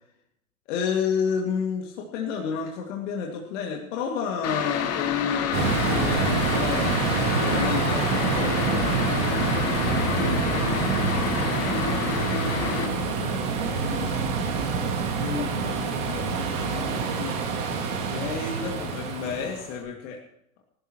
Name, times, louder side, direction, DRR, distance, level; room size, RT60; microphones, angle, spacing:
voice 1, 0.7-6.9 7.4-7.9 8.3-8.8 15.2-15.5 18.1-20.2, left 6 dB, 65° left, 0 dB, 2.3 m, -30 dB
sound 1, 4.4-12.9, left 8 dB, 35° left, 1.8 m, -29 dB
sound 2, 5.5-19.7, right 5 dB, 70° right, 2.7 m, -26 dB
voice 2, 7.6-9.5 10.1-14.3 15.3-17.5, left 5 dB, 80° left, -1 dB, 3.0 m, -40 dB
19.5 x 13.0 x 3.1 m, 0.78 s
hypercardioid pair, 90°, 40 cm